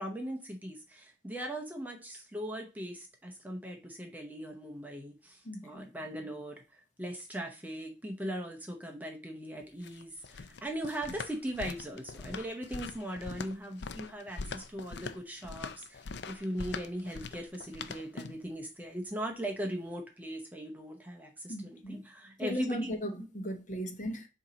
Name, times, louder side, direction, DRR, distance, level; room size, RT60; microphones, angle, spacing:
voice 1, 0.0-23.3, right 1 dB, 10° right, 0.7 m, -39 dB
voice 2, 5.4-5.9 21.5-22.0 22.4-24.3, equal, 40° left, 1.0 m, -37 dB
sound 1, 9.6-18.5, left 4 dB, 60° left, 0.5 m, -43 dB
7.0 x 2.8 x 5.0 m
head